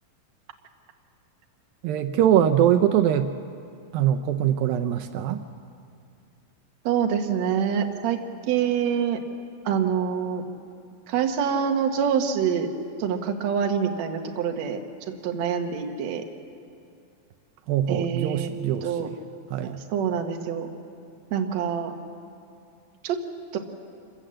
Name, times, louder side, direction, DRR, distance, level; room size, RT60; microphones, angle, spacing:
voice 1, 1.8-3.3 3.9-5.5 17.7-19.2 19.5-19.8, right 10 dB, 80° right, 7 dB, 2.4 m, -22 dB
voice 2, 6.9-9.2 9.7-10.4 11.1-12.7 13.0-14.8 15.2-16.2 17.9-18.5 18.8-19.1 19.6-20.7 21.3-21.9 23.0-23.2 23.5-23.6, right 7 dB, 60° right, 4 dB, 2.1 m, -26 dB
26.5 x 15.5 x 7.6 m, 2.4 s
omnidirectional pair, 4.2 m